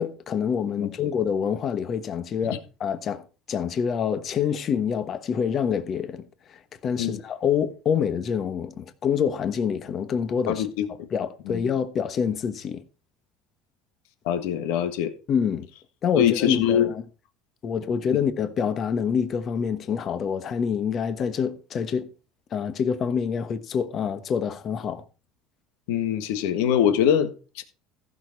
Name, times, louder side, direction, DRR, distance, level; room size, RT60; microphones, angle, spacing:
voice 1, 0.0-10.7 11.1-12.8 15.3-15.7 16.0-17.0 17.6-22.1 22.5-25.0, left 7 dB, 35° left, 1.1 m, -26 dB
voice 2, 10.5-10.9 11.5-11.6 14.3-15.1 16.1-16.9 25.9-27.6, left 9 dB, 85° left, 1.6 m, -23 dB
14.5 x 6.3 x 4.6 m
cardioid pair, 145°, 0 cm